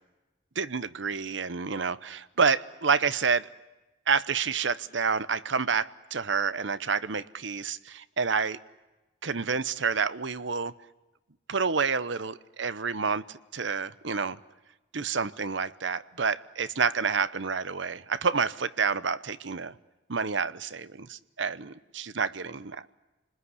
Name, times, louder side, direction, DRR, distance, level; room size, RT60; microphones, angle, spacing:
voice 1, 0.6-3.5 4.1-8.6 9.2-10.7 11.5-14.4 14.9-19.7 20.1-22.9, right 5 dB, 70° right, 15 dB, 0.9 m, -29 dB
29.0 x 20.5 x 9.8 m, 1.1 s
head